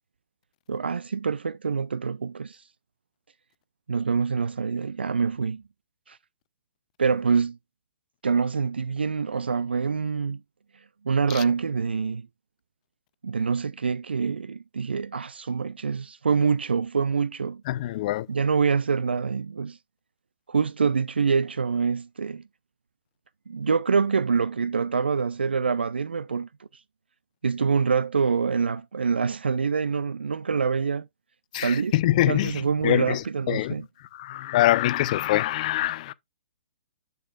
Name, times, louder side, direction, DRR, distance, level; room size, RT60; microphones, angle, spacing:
voice 1, 0.7-2.6 3.9-5.6 6.1-6.2 7.0-7.6 8.2-10.4 11.0-12.3 13.2-17.6 18.3-19.8 20.5-22.4 23.5-26.7 27.4-31.1 31.6-32.0 32.3-33.8, right 5 dB, 80° right, 0.3 m, -25 dB
voice 2, 17.7-18.3 31.5-33.8 34.1-36.1, left 15 dB, 45° left, 0.4 m, -24 dB
7.7 x 6.8 x 2.4 m
figure-of-eight pair, 120°, 6 cm